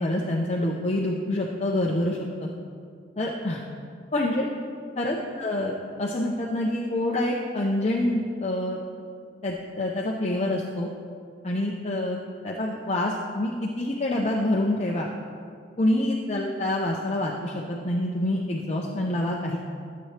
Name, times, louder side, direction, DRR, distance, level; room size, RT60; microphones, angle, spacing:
voice 1, 0.0-2.5 3.2-3.6 4.1-4.5 5.0-5.7 6.0-8.8 9.4-10.9 11.4-15.1 15.8-19.6, left 1 dB, 35° left, -1 dB, 0.7 m, -26 dB
13.0 x 7.8 x 3.3 m, 2.2 s
head